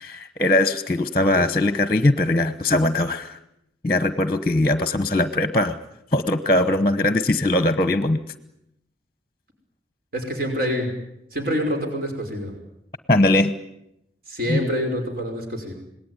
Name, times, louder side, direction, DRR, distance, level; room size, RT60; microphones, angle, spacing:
voice 1, 0.0-3.4 3.8-5.8 6.1-8.2 13.1-13.5 14.5-14.6, left 1 dB, 25° left, 11 dB, 1.1 m, -20 dB
voice 2, 10.1-10.9 11.3-12.5 14.3-15.7, equal, 50° right, 3 dB, 5.4 m, -26 dB
27.0 x 20.0 x 9.8 m, 0.82 s
head